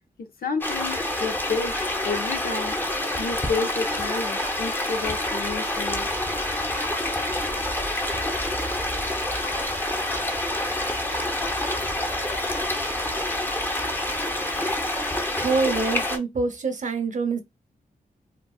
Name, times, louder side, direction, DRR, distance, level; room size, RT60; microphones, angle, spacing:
voice 1, 0.2-1.8 2.0-2.8 3.2-6.1, left 4 dB, 80° left, 0.7 m, -30 dB
sound 1, 0.6-16.2, left 1 dB, 15° left, 0.8 m, -27 dB
voice 2, 15.4-17.4, right 4 dB, 55° right, 0.8 m, -25 dB
4.1 x 2.3 x 2.3 m
wide cardioid pair, 75°, 15 cm